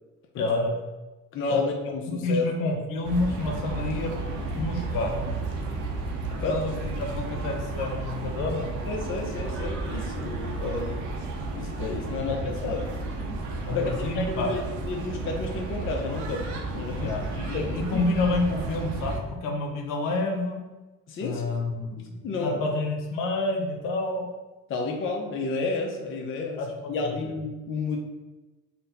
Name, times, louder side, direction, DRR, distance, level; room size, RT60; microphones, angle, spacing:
voice 1, 0.3-0.7 1.5-1.6 2.2-4.1 4.5-5.5 6.4-8.7 12.2-12.3 13.7-14.5 17.0-20.6 21.2-24.3 26.6-27.3, left 2 dB, 80° left, 1 dB, 0.8 m, -29 dB
voice 2, 1.3-2.5 6.4-6.5 8.9-11.0 11.5-12.9 13.7-17.1 17.5-18.0 21.1-21.6 22.0-22.6 24.7-26.6 26.9-28.0, left 3 dB, 40° left, 1 dB, 0.6 m, -31 dB
sound 1, 3.0-19.2, right 2 dB, 65° right, 0.7 m, -33 dB
4.2 x 2.1 x 4.1 m, 1.1 s
cardioid pair, 105°, 32 cm